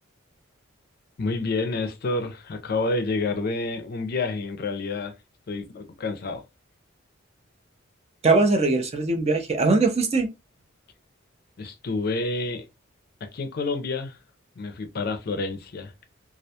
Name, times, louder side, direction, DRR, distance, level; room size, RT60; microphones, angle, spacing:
voice 1, 1.2-5.1 5.5-6.4 11.6-12.6 13.2-14.2 14.6-15.9, left 3 dB, 50° left, 0.4 m, -29 dB
voice 2, 8.2-10.3, right 3 dB, 30° right, 0.4 m, -21 dB
2.3 x 2.2 x 2.7 m
head